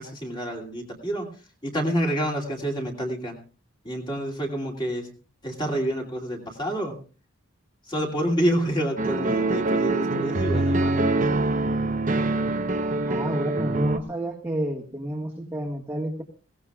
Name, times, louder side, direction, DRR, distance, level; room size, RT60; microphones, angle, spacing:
voice 1, 0.0-3.4 3.8-5.1 5.4-7.0 7.8-11.0, right 1 dB, 20° left, 0 dB, 2.8 m, -28 dB
sound 1, 9.0-14.0, right 2 dB, 35° right, 0.9 m, -24 dB
voice 2, 13.0-16.2, right 1 dB, 10° right, -3 dB, 1.6 m, -30 dB
22.0 x 17.5 x 2.4 m, 0.37 s
head